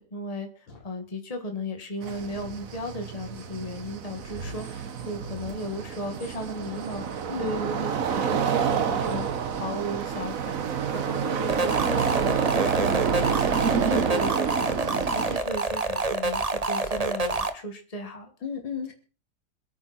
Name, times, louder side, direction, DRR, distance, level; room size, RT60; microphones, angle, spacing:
voice 1, 0.0-9.3 9.5-18.3, equal, 20° left, 5 dB, 2.0 m, -36 dB
sound 1, 2.0-15.4, right 7 dB, 50° right, 1.3 m, -28 dB
sound 2, 3.3-9.6, right 2 dB, 80° right, 6.9 m, -53 dB
sound 3, 11.5-17.5, right 3 dB, 25° right, 0.9 m, -27 dB
voice 2, 18.4-18.9, left 6 dB, 80° left, 3 dB, 3.6 m, -33 dB
26.0 x 9.0 x 4.4 m, 0.36 s
omnidirectional pair, 2.1 m